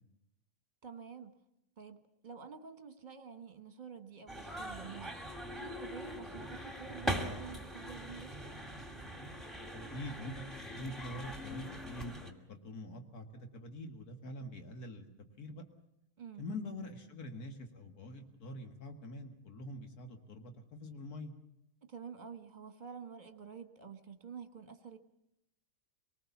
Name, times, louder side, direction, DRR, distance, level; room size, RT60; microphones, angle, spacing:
voice 1, 0.8-1.3 1.8-5.1 5.5-8.5 16.2-16.4 21.8-25.0, right 6 dB, 30° right, 8 dB, 1.5 m, -49 dB
sound 1, 4.3-12.3, equal, ahead, 2.0 m, -42 dB
voice 2, 9.9-10.3 10.6-15.1 15.4-15.6 16.4-21.3, left 1 dB, 80° left, 5 dB, 2.3 m, -45 dB
24.5 x 19.5 x 7.1 m, 0.84 s
omnidirectional pair, 1.6 m